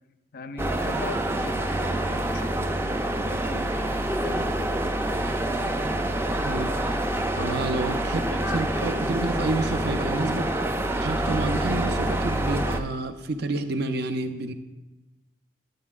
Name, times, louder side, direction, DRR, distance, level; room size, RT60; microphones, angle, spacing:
voice 1, 0.3-2.8 3.3-3.7 4.2-4.5, left 3 dB, 55° left, 10 dB, 0.4 m, -39 dB
sound 1, 0.6-12.8, right 1 dB, 15° right, 0.4 m, -27 dB
voice 2, 6.4-6.8 7.4-10.5 11.0-14.5, right 2 dB, 65° right, 8 dB, 0.5 m, -29 dB
9.4 x 8.8 x 2.4 m, 1.1 s
head